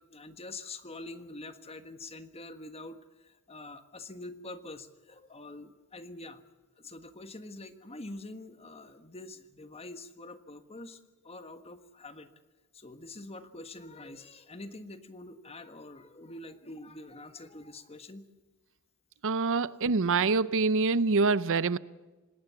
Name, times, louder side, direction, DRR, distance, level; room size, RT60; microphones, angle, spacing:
voice 1, 0.0-6.4 6.8-12.3 12.7-18.2 19.6-19.7, left 2 dB, 25° left, 1.5 m, -45 dB
voice 2, 19.2-21.8, right 4 dB, 60° right, 0.7 m, -25 dB
26.0 x 19.5 x 7.0 m
head